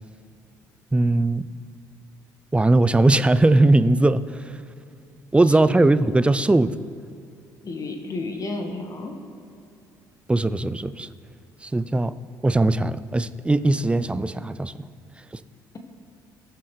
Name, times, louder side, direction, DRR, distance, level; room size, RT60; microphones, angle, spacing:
voice 1, 0.9-1.5 2.5-4.6 5.3-6.8 10.3-11.1 11.6-12.1 12.4-14.7 15.3-15.4, right 2 dB, 10° right, 15 dB, 0.5 m, -19 dB
voice 2, 7.6-9.2, left 2 dB, 35° left, 4 dB, 1.6 m, -32 dB
19.0 x 7.4 x 3.3 m, 2.6 s
hypercardioid pair, 50°, 10 cm